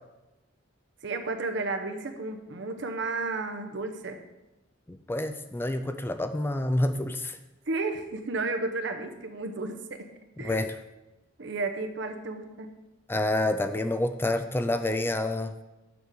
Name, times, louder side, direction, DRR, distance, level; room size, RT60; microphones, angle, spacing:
voice 1, 1.0-4.2 7.7-10.0 10.4-10.7 11.4-12.7, right 3 dB, 65° right, 6 dB, 0.9 m, -32 dB
voice 2, 4.9-7.4 10.4-10.7 13.1-15.5, left 1 dB, 10° left, 9 dB, 0.4 m, -28 dB
8.0 x 5.1 x 6.3 m, 1.0 s
head